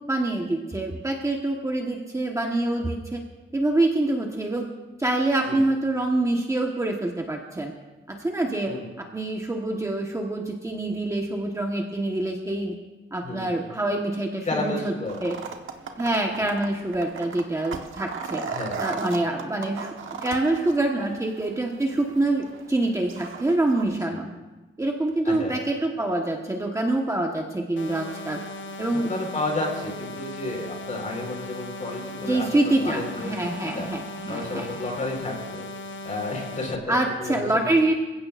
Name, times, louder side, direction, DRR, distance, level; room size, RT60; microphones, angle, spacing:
voice 1, 0.1-3.2 3.5-4.7 5.0-7.7 8.1-12.7 13.1-14.9 15.2-15.4 16.0-18.4 18.8-19.9 20.2-24.3 24.8-28.4 28.8-29.1 32.2-34.8 36.9-37.9, right 2 dB, 15° right, 0 dB, 1.3 m, -26 dB
voice 2, 13.2-13.6 14.4-15.1 16.4-16.5 18.5-18.8 24.1-24.2 25.2-25.6 29.1-33.4 33.7-33.9 34.3-35.6 36.0-37.4, left 2 dB, 40° left, 0 dB, 4.5 m, -31 dB
sound 1, 15.1-23.8, right 5 dB, 80° right, 1.3 m, -37 dB
sound 2, 27.8-36.8, left 1 dB, 70° left, 0.9 m, -38 dB
27.5 x 16.0 x 2.6 m, 1.2 s
wide cardioid pair, 165°, 20 cm